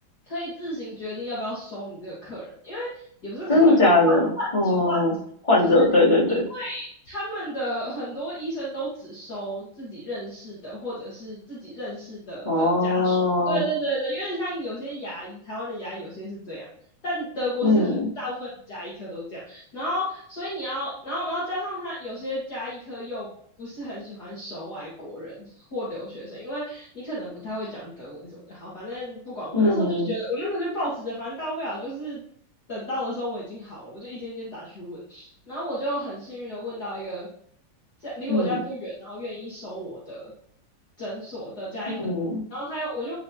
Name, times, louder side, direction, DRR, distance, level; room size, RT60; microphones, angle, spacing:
voice 1, 0.3-3.7 4.0-5.0 5.6-5.8 6.5-13.2 13.5-16.7 17.0-23.3 23.6-32.2 32.7-37.3 38.0-40.3 41.0-42.0 42.5-43.2, equal, 50° left, -7 dB, 2.7 m, -33 dB
voice 2, 3.5-4.3 4.5-5.1 5.4-6.4 12.4-13.6 17.6-18.1 29.5-30.1 38.3-38.6 42.0-42.4, left 2 dB, 15° left, -9 dB, 3.5 m, -20 dB
10.5 x 5.7 x 3.0 m, 0.63 s
omnidirectional pair, 2.4 m